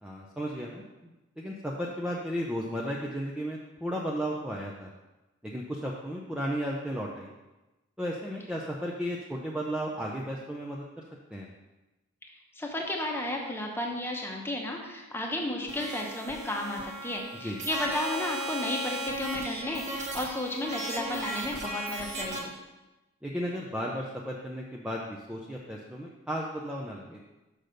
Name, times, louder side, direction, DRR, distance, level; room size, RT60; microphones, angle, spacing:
voice 1, 0.0-0.8 1.4-4.9 5.4-7.3 8.0-11.0 11.3-11.5 17.4-17.6 23.2-27.2, equal, 5° right, -3 dB, 0.5 m, -34 dB
voice 2, 12.6-22.5, left 1 dB, 10° left, 1 dB, 0.9 m, -33 dB
sound 1, 15.7-22.4, right 1 dB, 35° right, 1.1 m, -36 dB
6.5 x 6.1 x 5.1 m, 1.1 s
head